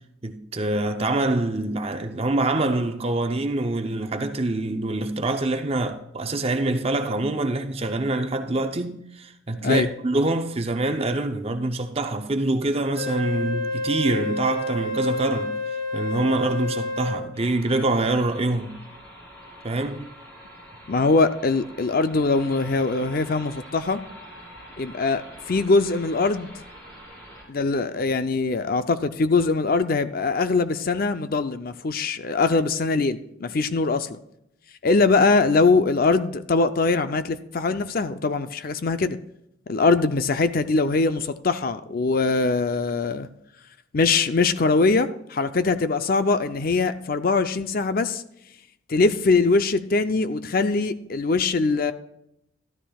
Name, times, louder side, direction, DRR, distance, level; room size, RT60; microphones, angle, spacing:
voice 1, 0.2-15.6 15.9-18.8 19.6-20.1, right 2 dB, 30° right, 0.6 m, -25 dB
Wind instrument woodwind instrument, 12.9-17.3, left 2 dB, 85° left, 3.4 m, -29 dB
sound 1, 17.3-27.4, equal, 15° left, 4.0 m, -45 dB
voice 2, 20.9-24.0 24.8-25.2 25.5-26.5 27.5-34.2 34.8-39.2 39.7-43.3 43.9-48.2 48.9-51.9, left 3 dB, 45° left, 0.5 m, -22 dB
13.0 x 13.0 x 2.3 m
head